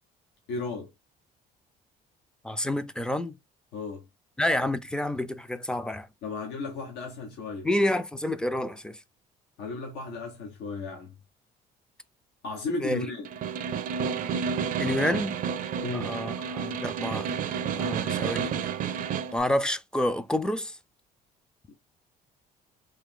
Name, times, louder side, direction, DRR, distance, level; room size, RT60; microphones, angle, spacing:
voice 1, 0.5-0.9 3.7-4.1 6.2-7.7 9.6-11.1 12.4-13.3 15.8-16.1, left 3 dB, 80° left, 1.0 m, -34 dB
voice 2, 2.4-3.4 4.4-6.1 7.6-9.0 12.8-13.1 14.8-15.4 15.9-17.3 17.7-18.5 19.3-20.8, left 1 dB, 5° left, 0.4 m, -28 dB
Snare drum, 13.2-19.4, right 7 dB, 55° right, 0.5 m, -30 dB
3.3 x 3.0 x 3.7 m
cardioid pair, 110°, 17 cm